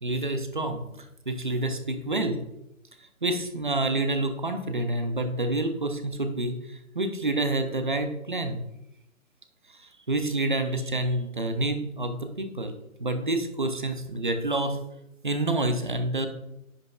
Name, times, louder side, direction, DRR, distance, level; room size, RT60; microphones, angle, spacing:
voice 1, 0.0-2.4 3.2-8.6 10.1-12.7 13.0-14.8 15.2-16.3, right 2 dB, 35° right, 7 dB, 0.6 m, -28 dB
9.7 x 5.6 x 2.3 m, 0.85 s
figure-of-eight pair, 165°, 42 cm